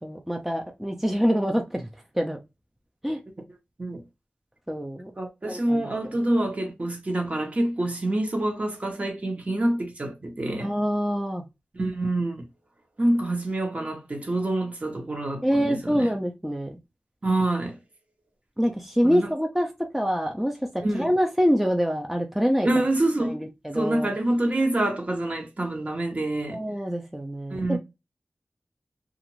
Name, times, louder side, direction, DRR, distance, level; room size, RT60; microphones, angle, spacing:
voice 1, 0.0-1.9 2.1-2.4 3.0-3.2 4.7-5.1 5.5-5.9 10.6-11.4 15.4-16.8 18.6-20.5 20.9-22.7 23.2-24.1 26.5-27.8, equal, 5° right, 0.5 m, -25 dB
voice 2, 5.2-10.7 11.7-12.4 13.0-16.1 17.2-17.8 19.0-19.3 20.8-21.1 22.6-23.3 23.7-26.6 27.5-27.8, right 1 dB, 45° right, 1.0 m, -26 dB
2.5 x 2.4 x 3.0 m
wide cardioid pair, 55°, 3 cm